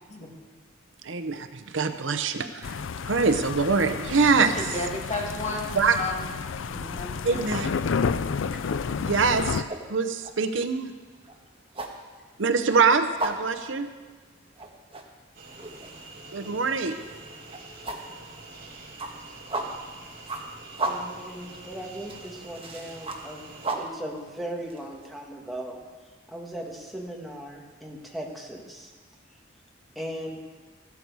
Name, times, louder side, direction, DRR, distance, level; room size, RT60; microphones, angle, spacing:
voice 1, 1.0-4.5 5.7-6.0 7.2-7.7 9.0-10.9 12.4-13.9 16.3-17.0, right 4 dB, 70° right, 8 dB, 0.8 m, -24 dB
sound 1, 2.6-9.6, left 5 dB, 75° left, 0.4 m, -31 dB
voice 2, 4.4-6.3 6.9-7.7, left 2 dB, 35° left, 0 dB, 1.9 m, -33 dB
voice 3, 6.6-7.0 8.9-9.2 20.8-25.8 26.3-28.9 29.9-30.4, right 1 dB, ahead, -1 dB, 1.7 m, -38 dB
sound 2, 8.6-25.1, right 2 dB, 30° right, 1.4 m, -36 dB
sound 3, 15.3-23.7, right 2 dB, 50° right, 4.3 m, -46 dB
15.0 x 12.0 x 4.8 m, 1.4 s
head